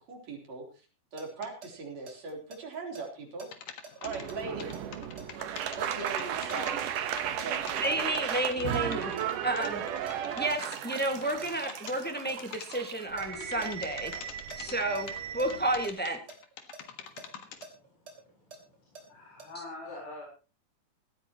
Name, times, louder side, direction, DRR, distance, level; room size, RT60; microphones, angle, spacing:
voice 1, 0.1-0.7 1.1-3.5 4.0-4.8 5.7-6.9 7.3-8.0, right 3 dB, 55° right, 1 dB, 4.7 m, -40 dB
sound 1, 1.2-7.0 7.4-9.7 10.1-10.2 10.5-11.0 11.4-14.6 14.9-15.1 15.4-15.5 15.8-15.9 16.3-19.0 19.4-19.5, right 4 dB, 30° right, 3.5 m, -47 dB
sound 2, 1.4-1.5 3.4-6.9 7.2-7.8 8.2-12.0 12.3-12.8 13.2-15.2 15.5-17.7, left 8 dB, 80° left, 3.1 m, -45 dB
sound 3, 4.0-15.9, right 10 dB, 75° right, 2.7 m, -35 dB
voice 2, 7.8-9.2 9.4-9.8 10.4-14.1 14.6-16.2, right 1 dB, 5° left, 4 dB, 0.7 m, -31 dB
voice 3, 13.3-13.6 14.1-14.2 14.5-14.7 16.9-17.5 17.8-18.0 18.3-20.3, left 2 dB, 55° left, -2 dB, 5.5 m, -47 dB
18.0 x 14.0 x 3.0 m, 0.34 s
omnidirectional pair, 3.8 m